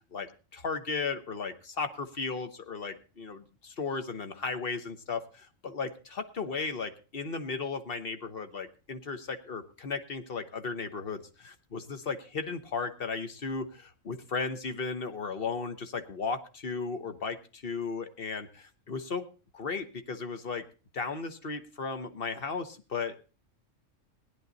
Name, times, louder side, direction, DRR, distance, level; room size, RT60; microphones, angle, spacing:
voice 1, 0.1-19.2 19.5-20.6 20.9-23.4, left 4 dB, 50° left, 8 dB, 1.3 m, -35 dB
17.0 x 10.0 x 4.0 m, 0.34 s
omnidirectional pair, 1.3 m